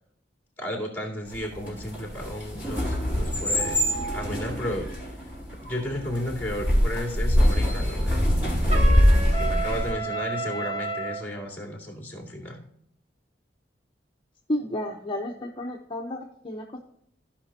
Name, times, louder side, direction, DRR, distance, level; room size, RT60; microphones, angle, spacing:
voice 1, 0.6-3.8 4.1-4.9 5.6-8.3 8.6-12.6, equal, 10° left, -1 dB, 2.4 m, -33 dB
sound 1, 1.3-9.9, equal, 10° right, 3.9 m, -24 dB
Trumpet, 8.7-11.2, right 3 dB, 35° right, 1.1 m, -31 dB
voice 2, 14.5-16.8, left 1 dB, 25° left, 0 dB, 0.8 m, -32 dB
15.5 x 5.8 x 2.8 m, 0.72 s
head